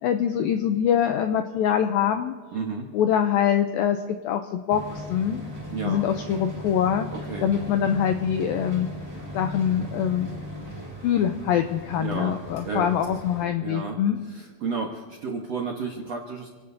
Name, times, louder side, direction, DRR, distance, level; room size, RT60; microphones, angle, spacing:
voice 1, 0.0-2.4 2.9-5.4 5.8-7.1 7.4-8.9 9.3-10.3 11.0-14.2, left 9 dB, 85° left, 6 dB, 2.0 m, -24 dB
voice 2, 2.5-2.9 5.7-6.0 7.1-7.5 12.0-12.3 12.6-12.9 13.6-14.0 14.2-16.5, right 4 dB, 70° right, -1 dB, 1.5 m, -32 dB
sound 1, 4.7-13.4, left 1 dB, 5° right, 2.5 m, -38 dB
29.0 x 18.0 x 2.7 m, 1.5 s
omnidirectional pair, 4.9 m